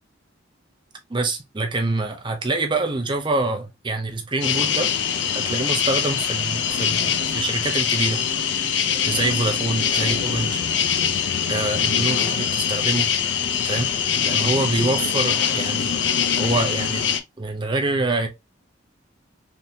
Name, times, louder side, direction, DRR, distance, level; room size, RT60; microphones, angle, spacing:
voice 1, 1.1-4.9 5.3-8.2 9.1-10.6 11.5-13.1 13.6-13.9 14.2-17.1 17.4-18.3, right 2 dB, 25° right, 0.6 m, -25 dB
sound 1, 4.4-17.2, left 8 dB, 65° left, 0.5 m, -23 dB
3.4 x 2.7 x 2.7 m
head